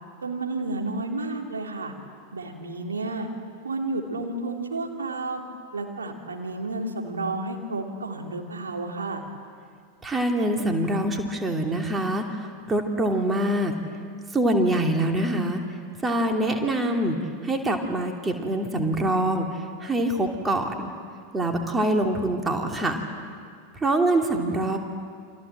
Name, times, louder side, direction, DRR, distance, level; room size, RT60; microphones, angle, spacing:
voice 1, 0.2-1.9 2.3-3.3 3.6-5.4 5.7-9.2 24.6-24.8, right 2 dB, 70° right, 2 dB, 3.2 m, -31 dB
voice 2, 10.0-13.7 14.3-15.6 16.0-17.2 17.4-19.5 19.8-20.9 21.3-23.0 23.8-24.8, right 1 dB, 15° right, 3 dB, 2.8 m, -24 dB
29.5 x 25.5 x 7.7 m, 2.2 s
figure-of-eight pair, 90°, 0 cm